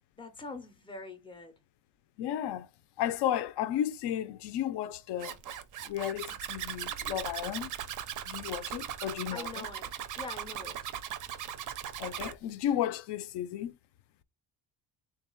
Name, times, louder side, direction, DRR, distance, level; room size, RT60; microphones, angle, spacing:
voice 1, 0.2-1.5 9.3-10.9, left 3 dB, 10° left, 0.5 m, -44 dB
voice 2, 2.2-2.7 3.0-5.4 5.8-7.7 8.3-9.7 12.0-13.7, left 11 dB, 60° left, 0.5 m, -33 dB
Zipper (clothing), 5.2-12.3, right 10 dB, 45° right, 0.4 m, -39 dB
3.7 x 2.4 x 4.3 m
cardioid pair, 180°, 46 cm